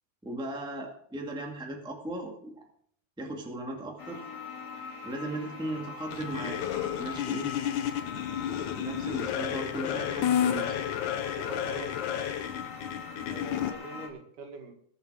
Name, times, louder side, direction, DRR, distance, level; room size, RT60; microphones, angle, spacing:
voice 1, 0.2-2.5 3.2-4.2 5.0-6.6 6.9-7.5 8.8-10.8, right 1 dB, ahead, 1 dB, 1.5 m, -37 dB
sound 1, 4.0-14.1, left 5 dB, 40° left, 2.3 m, -42 dB
sound 2, 6.1-13.7, left 10 dB, 80° left, 2.4 m, -31 dB
voice 2, 11.4-12.1 13.3-14.7, right 3 dB, 80° right, 3 dB, 3.5 m, -43 dB
21.0 x 7.1 x 4.9 m, 0.63 s
omnidirectional pair, 3.5 m